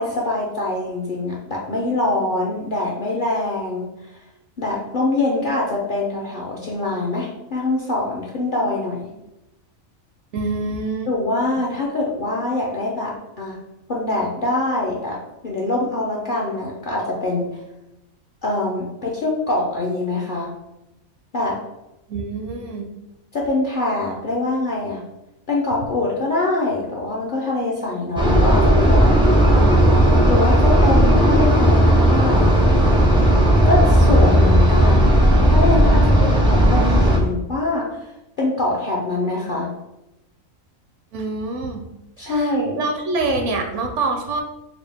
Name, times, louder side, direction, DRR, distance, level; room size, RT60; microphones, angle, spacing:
voice 1, 0.0-3.9 4.6-9.1 11.1-13.6 13.9-17.6 18.4-20.5 21.3-21.6 23.3-25.0 25.5-32.5 33.6-37.9 38.4-39.7 42.2-42.8, left 2 dB, 55° left, -3 dB, 0.6 m, -24 dB
voice 2, 10.3-11.1 22.1-22.9 41.1-41.8 42.2-44.4, right 3 dB, 70° right, 4 dB, 0.8 m, -25 dB
sound 1, 28.2-37.2, equal, 5° right, 0.3 m, -14 dB
4.2 x 2.3 x 3.4 m, 0.91 s
omnidirectional pair, 1.4 m